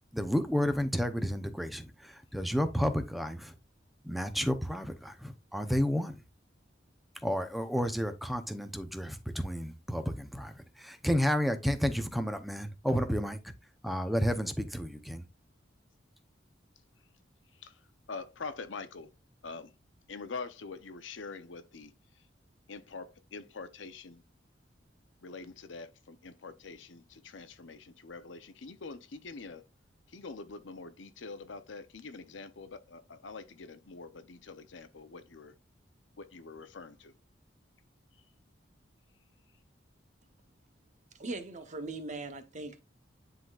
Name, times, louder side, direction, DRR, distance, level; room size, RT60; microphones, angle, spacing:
voice 1, 0.1-3.6 4.0-6.2 7.2-13.5 13.8-15.2, equal, ahead, 0.7 m, -31 dB
voice 2, 18.1-19.1 19.4-19.7 20.1-22.2 22.7-24.2 25.2-29.6 30.1-35.5 36.2-37.1, left 4 dB, 85° left, 0.7 m, -45 dB
voice 3, 41.1-42.8, right 2 dB, 40° right, 0.9 m, -40 dB
10.0 x 3.9 x 2.4 m
head